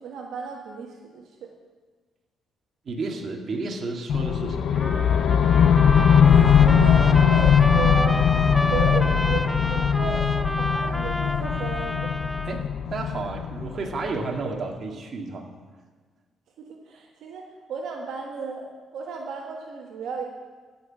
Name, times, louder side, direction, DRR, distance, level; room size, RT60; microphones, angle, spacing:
voice 1, 0.0-1.5 6.2-8.3 8.7-12.1 16.6-18.7 18.9-20.2, right 5 dB, 75° right, 0 dB, 1.4 m, -34 dB
voice 2, 2.9-4.9 12.5-15.5, right 3 dB, 50° right, 1 dB, 1.9 m, -32 dB
sound 1, 4.1-14.2, left 7 dB, 65° left, 0.7 m, -20 dB
Trumpet, 4.7-12.6, equal, 5° left, 0.6 m, -30 dB
15.0 x 5.9 x 7.2 m, 1.4 s
cardioid pair, 90°, 0 cm